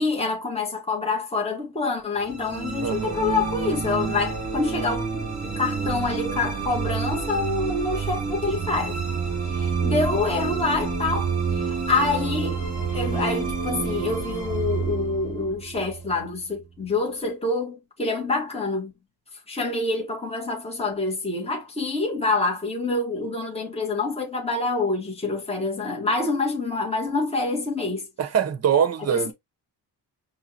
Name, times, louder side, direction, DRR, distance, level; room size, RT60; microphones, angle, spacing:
voice 1, 0.0-9.0 9.6-12.6 12.9-18.9 19.5-28.0 29.1-29.3, left 3 dB, 15° left, 1.3 m, -26 dB
sound 1, 2.2-16.6, right 5 dB, 20° right, 2.6 m, -28 dB
voice 2, 2.8-3.2 28.2-29.3, right 8 dB, 35° right, 0.7 m, -23 dB
5.5 x 3.0 x 2.8 m
wide cardioid pair, 150°, 42 cm